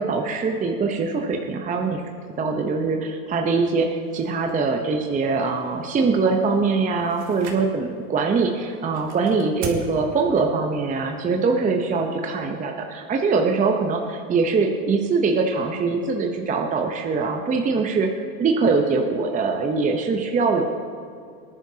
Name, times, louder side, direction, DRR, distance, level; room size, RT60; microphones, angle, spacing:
voice 1, 0.0-2.0 2.4-20.7, right 4 dB, 20° right, 3 dB, 0.8 m, -23 dB
sound 1, 4.0-12.4, right 4 dB, 40° right, 2.2 m, -42 dB
19.0 x 11.0 x 2.8 m, 2.3 s
supercardioid pair, 120°, 43 cm